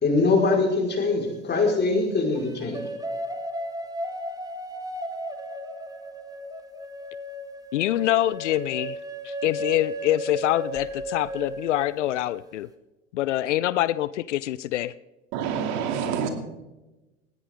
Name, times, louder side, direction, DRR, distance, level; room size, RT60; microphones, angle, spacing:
voice 1, 0.0-2.8, left 3 dB, 30° left, 0 dB, 4.8 m, -22 dB
sound 1, 0.9-1.6 2.4-12.4, equal, 10° right, 1.8 m, -35 dB
voice 2, 7.7-9.0 9.2-12.7 13.1-14.9, left 14 dB, 75° left, 19 dB, 0.5 m, -25 dB
voice 3, 15.3-16.3, right 7 dB, 60° right, 6 dB, 2.6 m, -27 dB
19.5 x 16.0 x 3.7 m, 1.0 s
hypercardioid pair, 80°, 36 cm